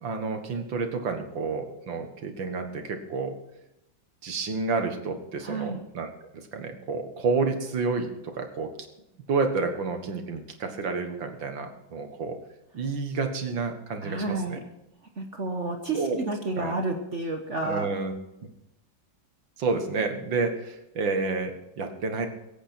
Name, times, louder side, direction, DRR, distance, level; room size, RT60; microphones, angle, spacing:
voice 1, 0.0-3.3 4.2-8.7 9.3-12.4 12.7-14.6 15.9-16.2 16.6-16.8 17.6-18.1 19.6-22.3, right 4 dB, 80° right, 6 dB, 2.3 m, -30 dB
voice 2, 5.4-5.8 14.0-14.6 15.2-17.9, right 2 dB, 45° right, 3 dB, 1.3 m, -30 dB
23.0 x 8.7 x 4.4 m, 0.87 s
omnidirectional pair, 2.0 m